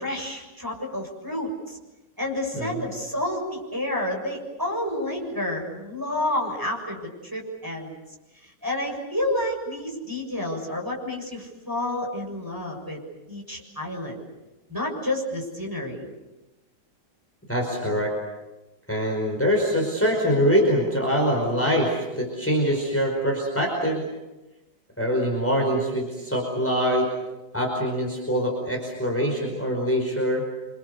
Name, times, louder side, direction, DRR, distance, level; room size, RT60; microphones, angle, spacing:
voice 1, 0.0-1.8 2.2-7.9 8.4-13.0 13.3-14.2 14.7-16.1, left 1 dB, 10° right, 0 dB, 7.0 m, -30 dB
voice 2, 17.5-18.1 18.9-24.0 25.0-27.1 27.5-30.4, equal, 5° left, 0 dB, 5.0 m, -24 dB
29.0 x 26.0 x 6.9 m, 1.1 s
omnidirectional pair, 1.9 m